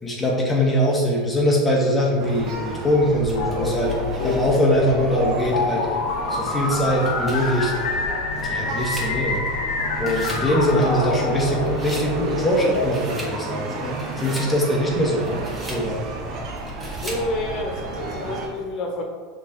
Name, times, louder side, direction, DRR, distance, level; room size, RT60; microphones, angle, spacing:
voice 1, 0.0-3.9 4.2-5.9 6.3-7.7 8.4-9.4 10.0-15.4 15.7-16.1, equal, 15° left, -3 dB, 1.7 m, -22 dB
sound 1, 2.2-18.5, right 3 dB, 50° right, 1.2 m, -32 dB
sound 2, 3.3-12.9, left 3 dB, 65° left, 0.9 m, -26 dB
sound 3, 3.3-4.8 5.4-5.5 6.7-9.7 9.9-10.5 10.8-12.1 12.6-13.4 13.8-14.5 15.1-15.9 16.6-17.3, right 1 dB, 15° right, 1.7 m, -41 dB
voice 2, 17.0-19.0, left 2 dB, 45° left, 1 dB, 1.4 m, -29 dB
5.9 x 3.8 x 4.4 m, 1.5 s
hypercardioid pair, 85°, 0 cm